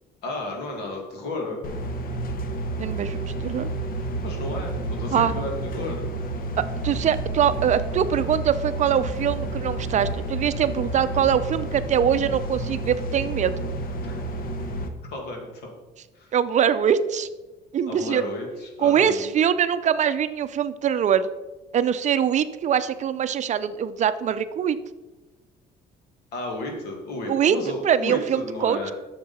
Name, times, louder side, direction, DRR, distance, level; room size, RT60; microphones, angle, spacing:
voice 1, 0.2-1.7 4.2-6.1 14.0-14.2 15.1-15.7 16.1-16.3 17.9-19.3 26.3-28.9, left 2 dB, 80° left, 1 dB, 2.3 m, -33 dB
sound 1, 1.6-14.9, right 2 dB, 60° left, 1.1 m, -30 dB
voice 2, 2.8-3.7 5.1-5.3 6.8-13.6 16.3-17.3 17.7-18.2 18.8-21.3 21.7-24.8 27.3-27.6 27.8-28.9, right 8 dB, 45° right, 12 dB, 0.5 m, -23 dB
9.2 x 6.7 x 4.2 m, 1.1 s
cardioid pair, 110°, 17 cm